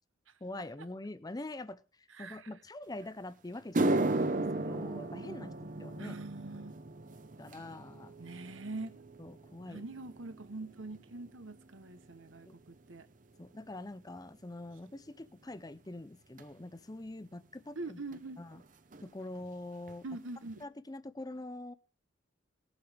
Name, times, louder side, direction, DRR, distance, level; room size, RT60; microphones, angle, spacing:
voice 1, 0.4-1.8 2.2-6.2 7.4-8.1 9.2-9.9 12.5-12.6 13.4-18.0 18.4-18.6 19.0-20.1 20.6-21.7, left 2 dB, 20° left, 0.6 m, -44 dB
voice 2, 2.1-2.5 6.0-6.8 8.2-8.9 9.6-12.5 12.9-13.1 17.8-18.4 20.0-20.7, right 2 dB, 80° right, 1.1 m, -43 dB
sound 1, 3.0-3.1 3.6-12.1 12.4-12.8 13.5-13.6 16.4-16.5 18.1-18.2 18.4-18.7 18.9-19.5 19.9-20.0 20.5-20.6, right 2 dB, 40° right, 0.7 m, -36 dB
19.5 x 7.9 x 3.5 m
head